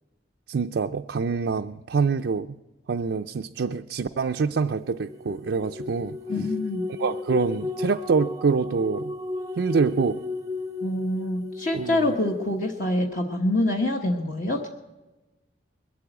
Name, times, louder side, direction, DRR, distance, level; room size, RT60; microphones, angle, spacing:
voice 1, 0.5-2.5 2.9-6.2 7.0-9.1 9.6-10.2 11.7-12.2, right 5 dB, 70° right, 0.4 m, -25 dB
sound 1, 4.8-12.7, left 3 dB, 20° right, 0.6 m, -34 dB
voice 2, 6.3-6.8 10.8-14.7, left 1 dB, 45° left, 1.2 m, -26 dB
21.0 x 8.4 x 8.0 m
head